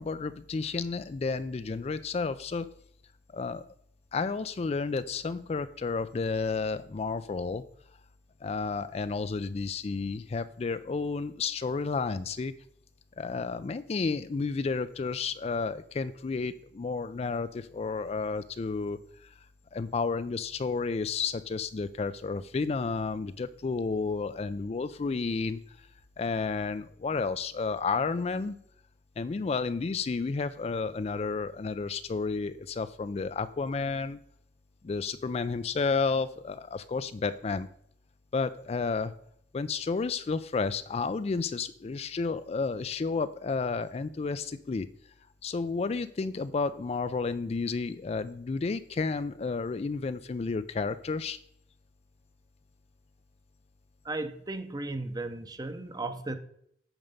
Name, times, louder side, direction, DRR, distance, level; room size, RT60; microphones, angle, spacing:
voice 1, 0.0-2.7 3.3-3.6 4.1-7.6 8.4-12.5 13.2-19.3 19.7-25.6 26.2-28.6 29.2-34.2 34.8-37.7 38.3-39.1 39.5-44.9 45.4-51.4, left 4 dB, 35° left, 13 dB, 0.3 m, -31 dB
voice 2, 54.0-56.4, right 2 dB, 20° right, 9 dB, 0.7 m, -35 dB
8.9 x 5.3 x 5.2 m, 0.69 s
head